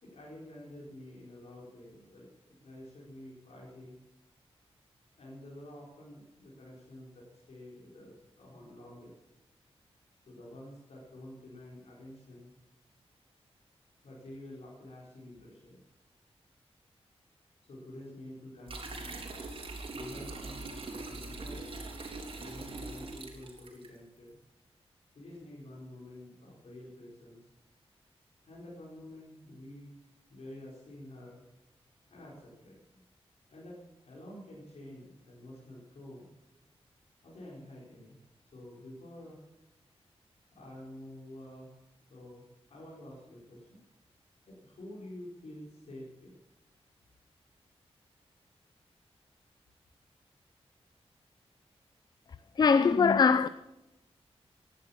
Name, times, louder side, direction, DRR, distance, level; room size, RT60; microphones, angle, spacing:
voice 1, 0.0-4.0 5.2-9.1 10.3-12.5 14.0-15.8 17.6-19.1 19.9-21.8 22.3-24.4 25.1-27.5 28.5-30.0 30.3-31.4 32.1-33.0 33.5-33.8 34.0-36.3 37.2-38.2 38.5-39.4 40.5-41.7 42.1-42.4 42.7-43.8 44.5-46.3, left 1 dB, 80° left, 4.7 m, -49 dB
sound 1, 18.7-23.9, right 3 dB, 55° right, 3.7 m, -42 dB
voice 2, 52.6-53.5, left 5 dB, 40° left, 0.5 m, -22 dB
17.5 x 11.0 x 7.2 m
wide cardioid pair, 155°, 11 cm